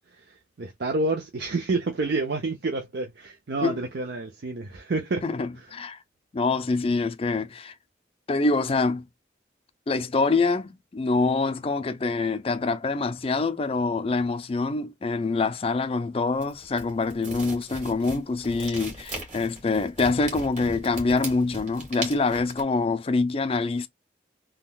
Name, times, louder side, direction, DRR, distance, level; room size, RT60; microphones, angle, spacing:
voice 1, 0.6-5.2, right 3 dB, 60° right, 0.6 m, -28 dB
voice 2, 5.2-6.0 6.3-7.7 8.3-9.0 9.9-23.9, left 3 dB, 30° left, 0.4 m, -25 dB
sound 1, 16.4-22.6, right 2 dB, 40° right, 1.7 m, -39 dB
3.6 x 2.3 x 2.3 m
head